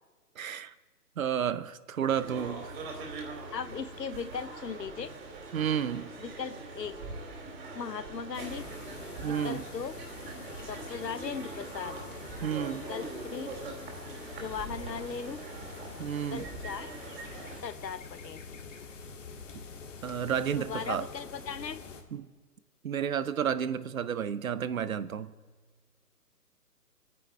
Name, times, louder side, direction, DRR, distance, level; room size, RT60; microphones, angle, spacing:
voice 1, 0.4-0.7 1.2-2.8 5.5-6.1 9.2-9.7 12.4-12.9 16.0-16.5 19.5-19.6 20.0-21.1 22.1-22.3 22.8-25.3, right 8 dB, 55° right, 0.8 m, -31 dB
sound 1, 2.1-17.6, right 3 dB, 40° right, 2.8 m, -42 dB
voice 2, 3.5-5.1 6.2-6.9 7.7-8.7 9.4-9.9 10.7-12.0 12.9-13.5 14.4-15.4 16.1-16.9 17.6-18.4 20.6-21.8, left 6 dB, 90° left, 1.0 m, -38 dB
sound 2, 8.3-22.0, left 5 dB, 50° left, 1.8 m, -46 dB
25.0 x 9.8 x 4.6 m
hypercardioid pair, 155°, 48 cm